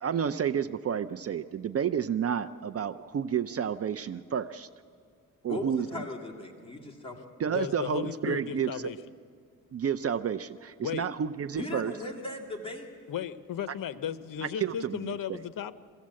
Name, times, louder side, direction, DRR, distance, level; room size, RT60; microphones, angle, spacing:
voice 1, 0.0-4.7 5.4-6.0 7.4-8.9 9.7-11.9 14.4-15.4, right 8 dB, 45° right, 10 dB, 0.5 m, -30 dB
voice 2, 5.5-7.2 11.5-12.9, left 2 dB, 15° left, 0 dB, 2.3 m, -38 dB
voice 3, 7.5-9.0 10.8-11.1 13.1-15.7, left 9 dB, 70° left, 13 dB, 0.8 m, -35 dB
23.0 x 15.5 x 7.6 m, 2.2 s
cardioid pair, 115°, 35 cm